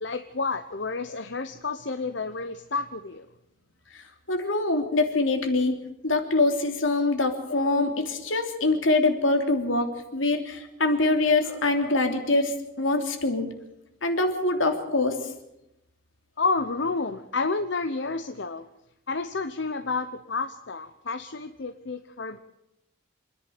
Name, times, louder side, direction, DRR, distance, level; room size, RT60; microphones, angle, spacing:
voice 1, 0.0-3.3 16.4-18.6 19.1-22.4, left 3 dB, 65° left, 9 dB, 0.9 m, -30 dB
voice 2, 3.9-13.5 14.0-15.3, left 2 dB, 85° left, 5 dB, 3.2 m, -24 dB
27.0 x 10.5 x 9.3 m, 0.85 s
head